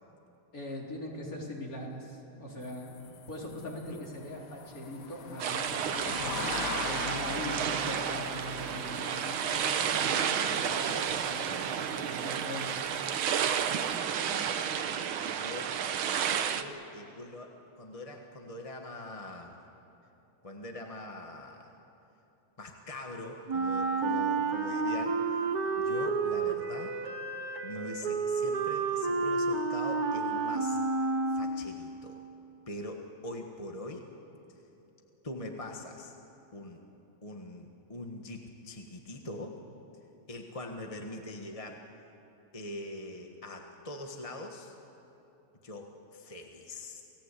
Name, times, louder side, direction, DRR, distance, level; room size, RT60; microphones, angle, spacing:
voice 1, 0.5-3.0 3.3-6.5 6.8-12.9, left 1 dB, 45° left, -2 dB, 4.2 m, -41 dB
sound 1, 2.6-14.0, left 5 dB, 60° left, 1.6 m, -43 dB
sound 2, 5.4-16.6, right 8 dB, 80° right, 1.8 m, -31 dB
voice 2, 14.3-14.6 15.2-15.7 16.0-19.5 20.4-21.7 22.6-25.4 25.8-27.0 27.6-30.8 31.3-32.2 32.7-34.1 35.2-36.2 36.5-36.8 37.2-39.5 40.3-41.8 42.5-44.7 45.6-47.0, left 1 dB, 20° left, 2 dB, 1.4 m, -43 dB
Wind instrument woodwind instrument, 23.5-31.8, right 4 dB, 50° right, 1.9 m, -30 dB
29.0 x 18.5 x 8.4 m, 2.9 s
omnidirectional pair, 2.2 m